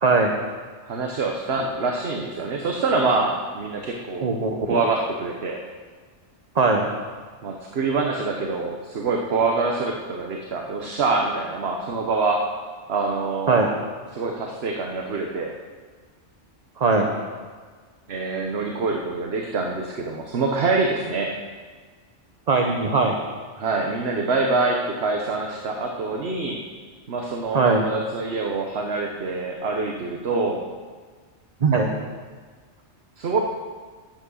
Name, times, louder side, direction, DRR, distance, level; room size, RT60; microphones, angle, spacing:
voice 1, 0.0-0.3 4.2-4.5 6.6-6.9 13.5-13.7 16.8-17.1 22.5-23.2 27.5-27.8 31.6-31.9, right 4 dB, 40° right, 2 dB, 0.9 m, -19 dB
voice 2, 0.8-5.6 7.4-12.5 12.9-13.7 14.1-15.5 18.1-21.4 23.6-26.6 27.1-30.6 33.2-33.4, right 3 dB, 60° right, 1 dB, 1.2 m, -25 dB
11.0 x 8.7 x 6.3 m, 1.5 s
omnidirectional pair, 1.2 m